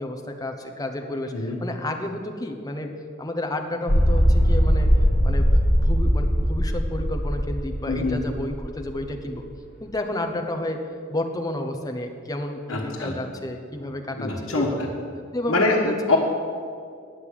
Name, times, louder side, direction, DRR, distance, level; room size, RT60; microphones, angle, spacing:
voice 1, 0.0-2.9 3.2-4.9 5.2-9.4 9.8-10.8 11.1-14.8 15.3-15.9, left 1 dB, 20° left, 4 dB, 0.8 m, -31 dB
sound 1, 3.9-8.6 8.9-9.0, equal, 45° left, 1.2 m, -20 dB
voice 2, 7.9-8.2 12.7-13.2 14.2-14.9 15.5-16.2, left 2 dB, 80° left, -5 dB, 1.4 m, -24 dB
9.1 x 6.5 x 8.6 m, 2.2 s
head